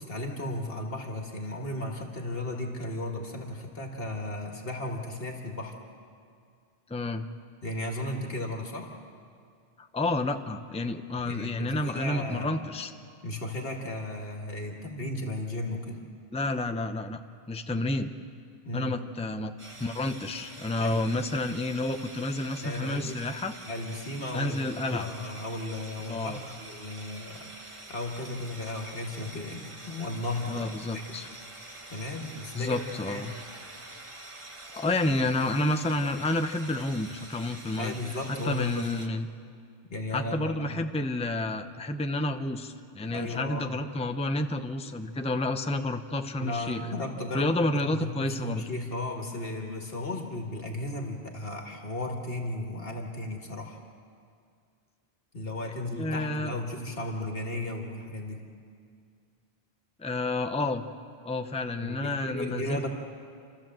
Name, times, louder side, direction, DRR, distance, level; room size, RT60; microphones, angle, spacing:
voice 1, 0.0-5.8 7.6-8.9 11.3-12.6 13.2-16.0 18.6-19.0 20.8-21.1 22.6-23.1 23.7-24.6 24.9-27.5 27.9-31.1 31.9-33.3 37.8-38.9 39.9-40.9 43.0-43.8 46.4-53.8 55.3-58.5 61.8-62.9, left 1 dB, 70° left, 2 dB, 1.9 m, -35 dB
voice 2, 6.9-7.3 9.8-12.9 16.3-17.2 17.5-18.1 18.7-19.5 19.8-23.5 24.3-25.1 26.1-26.4 30.5-31.3 32.5-33.3 34.7-37.9 38.4-39.3 40.1-46.8 47.3-48.6 55.9-56.5 60.0-60.8 61.2-62.9, left 2 dB, 5° left, 7 dB, 0.6 m, -30 dB
sound 1, 19.6-39.1, right 2 dB, 30° right, 1.4 m, -46 dB
28.5 x 13.0 x 7.6 m, 2.2 s
omnidirectional pair, 1.0 m